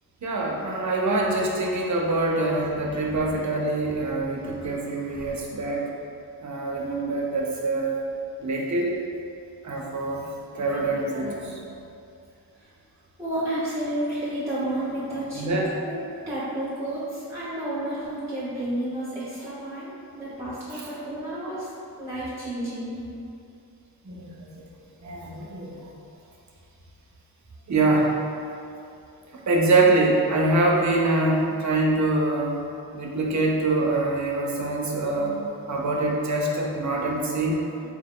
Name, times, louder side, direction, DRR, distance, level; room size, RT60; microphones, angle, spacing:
voice 1, 0.2-5.9 6.4-7.9 8.4-9.0 9.6-10.3 10.5-11.6 15.1-15.7 20.7-20.9 24.0-24.5 25.0-25.9 27.7-28.1 29.5-32.6 32.9-37.6, right 2 dB, 45° right, -2 dB, 0.6 m, -24 dB
voice 2, 13.2-15.5 15.8-15.9 16.3-21.7 22.0-23.0, right 1 dB, 10° right, -9 dB, 0.8 m, -31 dB
4.4 x 2.2 x 3.6 m, 2.5 s
wide cardioid pair, 110°, 39 cm